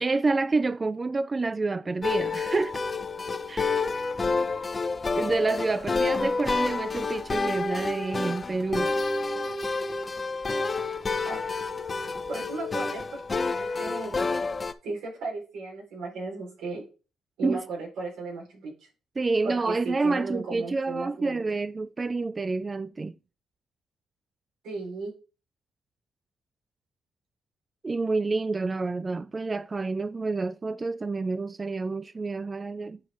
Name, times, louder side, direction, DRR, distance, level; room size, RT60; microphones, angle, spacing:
voice 1, 0.0-2.8 3.5-3.8 5.2-8.9 17.4-17.6 19.2-23.2 27.8-33.0, right 3 dB, 25° right, 0.3 m, -28 dB
sound 1, 2.0-14.7, left 3 dB, 25° left, 0.8 m, -29 dB
voice 2, 12.3-14.3 14.8-16.8 17.4-18.9 19.4-21.4 24.6-25.1, right 3 dB, 85° right, 4.4 m, -36 dB
9.6 x 5.1 x 3.7 m
cardioid pair, 90°, 0 cm